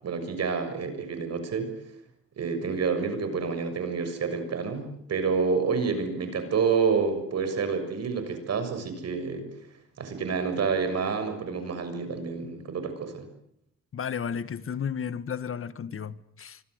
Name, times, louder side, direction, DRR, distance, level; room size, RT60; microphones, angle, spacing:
voice 1, 0.0-1.7 2.4-9.5 10.0-13.3, right 5 dB, 55° right, 6.6 m, -28 dB
voice 2, 13.9-16.6, left 7 dB, 45° left, 1.6 m, -33 dB
25.5 x 25.0 x 8.1 m
cardioid pair, 90°, 30 cm